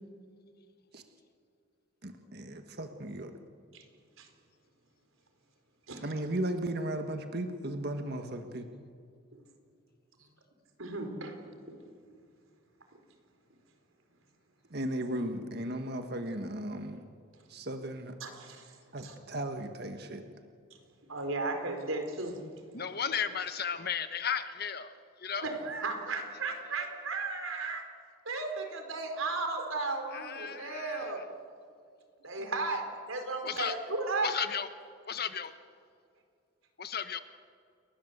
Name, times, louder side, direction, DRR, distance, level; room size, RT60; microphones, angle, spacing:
voice 1, 2.0-3.3 6.0-8.7 14.7-17.0 17.5-18.1 18.9-20.2, right 1 dB, 50° right, 6 dB, 1.6 m, -36 dB
voice 2, 10.8-11.4 11.7-11.8 18.2-18.8 19.0-19.1 21.1-22.4 25.4-27.8 28.2-31.2 32.2-34.3, right 3 dB, 90° right, 5 dB, 4.4 m, -35 dB
voice 3, 22.7-25.5 30.1-31.2 33.4-33.7 34.2-34.7 35.1-35.5 36.8-37.2, left 7 dB, 50° left, 10 dB, 1.3 m, -34 dB
29.5 x 22.5 x 8.1 m, 2.3 s
head